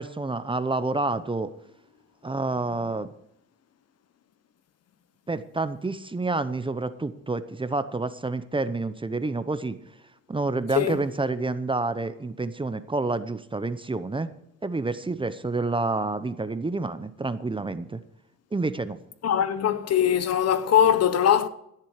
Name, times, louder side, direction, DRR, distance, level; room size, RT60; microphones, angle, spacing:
voice 1, 0.0-1.5 2.2-3.1 5.3-9.8 10.3-14.3 14.6-18.0 18.5-19.0, right 3 dB, 15° right, 0.8 m, -28 dB
voice 2, 19.2-21.5, left 9 dB, 55° left, 1.0 m, -21 dB
17.0 x 7.6 x 4.9 m
cardioid pair, 90°, 30 cm